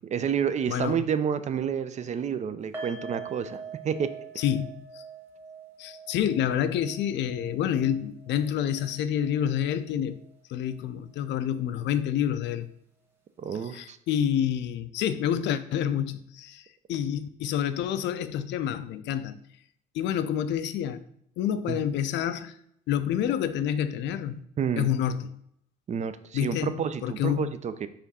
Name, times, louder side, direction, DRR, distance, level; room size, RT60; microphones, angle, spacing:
voice 1, 0.1-4.1 4.3-4.4 13.4-14.0 21.7-21.8 24.6-24.9 25.9-27.9, right 7 dB, 35° right, 0.5 m, -29 dB
voice 2, 0.7-1.1 4.4-5.0 5.8-10.2 10.5-12.7 13.6-19.4 19.9-21.0 21.4-22.5 22.9-24.4 24.8-25.4 26.3-27.5, left 9 dB, 65° left, 0.4 m, -28 dB
sound 1, 2.7-9.9 10.2-10.4 10.8-10.9, right 4 dB, 10° right, 1.3 m, -44 dB
4.9 x 2.6 x 4.1 m
supercardioid pair, 70°, 20 cm